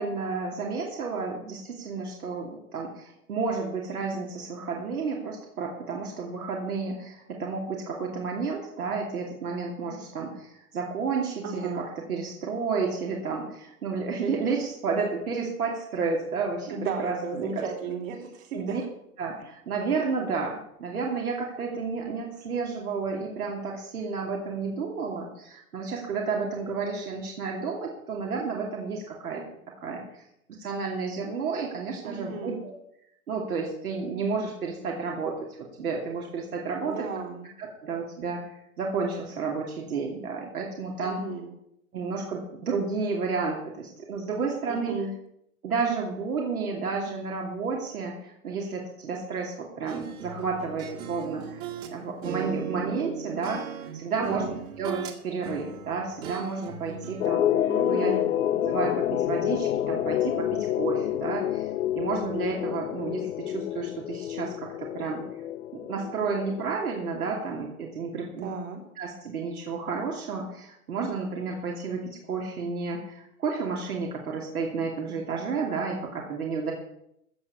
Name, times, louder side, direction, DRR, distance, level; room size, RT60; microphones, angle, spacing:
voice 1, 0.0-17.7 18.5-18.8 19.2-29.4 29.8-30.2 30.6-32.7 33.3-35.5 35.8-37.1 37.6-41.2 41.9-45.0 45.6-58.1 58.5-61.7 62.0-65.2 65.7-68.5 69.0-76.7, right 4 dB, 75° right, -1 dB, 2.8 m, -31 dB
voice 2, 11.4-11.8 16.7-18.9 32.0-32.6 36.8-37.5 41.0-41.5 44.7-45.1 54.2-54.6 57.7-58.3 68.4-68.8, right 4 dB, 55° right, 2 dB, 3.7 m, -34 dB
sound 1, 49.9-51.9 52.2-55.2 55.4-57.3, right 7 dB, 35° right, 1.9 m, -37 dB
sound 2, 57.2-67.7, left 11 dB, 70° left, 0.8 m, -28 dB
15.0 x 7.0 x 7.1 m, 0.78 s
hypercardioid pair, 130°, 45 cm